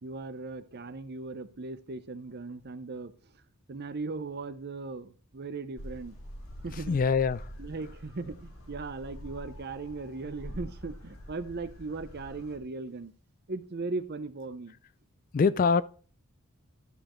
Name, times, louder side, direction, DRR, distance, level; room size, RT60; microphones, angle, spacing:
voice 1, 0.0-3.1 3.7-6.1 6.6-7.0 7.6-13.1 13.5-14.7, right 3 dB, 50° right, 0.6 m, -38 dB
sound 1, 5.8-12.6, equal, 65° left, 2.0 m, -45 dB
voice 2, 6.7-7.5 15.3-15.8, left 5 dB, 40° left, 0.3 m, -24 dB
11.0 x 6.9 x 3.1 m
head